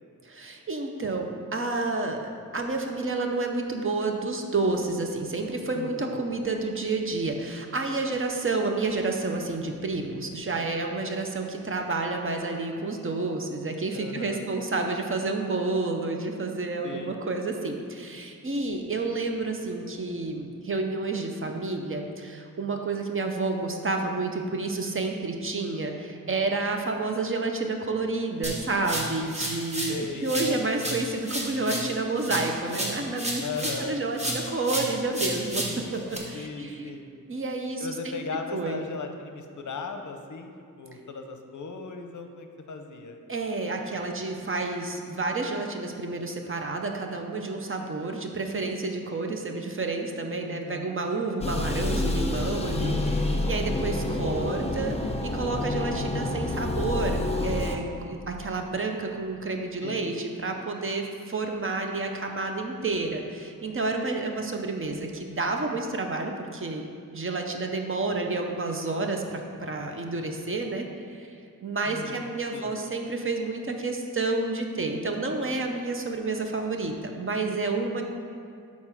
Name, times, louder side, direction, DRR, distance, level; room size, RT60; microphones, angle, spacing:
voice 1, 0.2-2.2 2.5-35.7 35.9-36.8 37.3-38.2 38.5-38.8 43.3-55.0 55.2-66.9 67.1-70.9 71.1-71.3 71.6-78.0, right 3 dB, 40° right, 3 dB, 0.6 m, -30 dB
voice 2, 5.8-6.1 13.9-14.4 16.8-17.2 29.9-30.8 33.4-34.0 36.3-37.1 37.8-43.2 50.4-51.0 59.8-60.2 71.9-72.7, left 4 dB, 60° left, 5 dB, 0.6 m, -37 dB
sound 1, 28.4-30.0 30.3-33.9 34.2-36.2, right 1 dB, 20° right, 1.1 m, -32 dB
sound 2, 51.4-57.8, left 2 dB, 20° left, 0.6 m, -28 dB
6.8 x 4.2 x 5.9 m, 2.4 s
wide cardioid pair, 135°, 33 cm